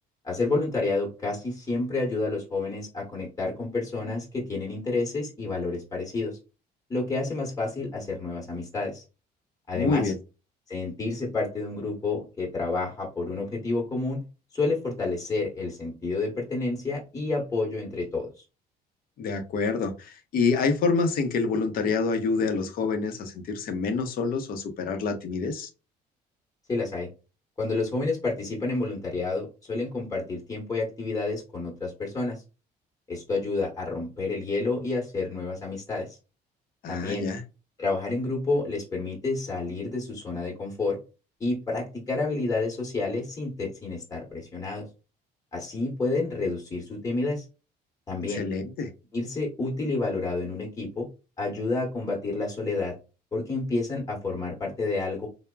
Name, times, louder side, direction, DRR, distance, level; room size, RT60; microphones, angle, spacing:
voice 1, 0.2-6.4 6.9-9.0 9.7-10.1 10.7-14.2 14.5-18.3 26.7-27.1 27.6-32.4 33.1-36.2 36.9-37.3 37.8-41.0 41.4-44.8 45.5-47.4 48.1-48.4 49.1-51.1 51.4-52.9 53.3-55.3, left 3 dB, 20° left, 1.0 m, -29 dB
voice 2, 9.7-10.2 19.2-25.7 36.8-37.4 48.3-48.9, left 4 dB, 60° left, 0.6 m, -27 dB
3.2 x 2.0 x 2.3 m
cardioid pair, 110°, 17 cm